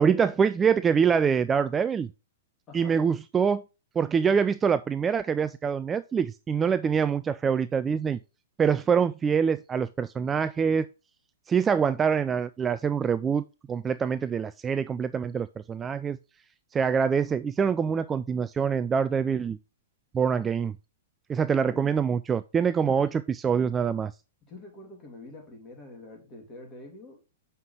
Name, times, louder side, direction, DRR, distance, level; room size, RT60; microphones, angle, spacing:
voice 1, 0.0-2.1 2.7-3.6 4.0-8.2 8.6-10.9 11.5-13.4 13.7-16.2 16.7-19.6 20.1-20.8 21.3-24.1, right 6 dB, 20° right, 0.3 m, -25 dB
voice 2, 2.7-3.1 21.6-21.9 22.8-23.1 24.4-27.2, left 2 dB, 25° left, 2.8 m, -45 dB
7.2 x 5.7 x 3.2 m
hypercardioid pair, 115°, 0 cm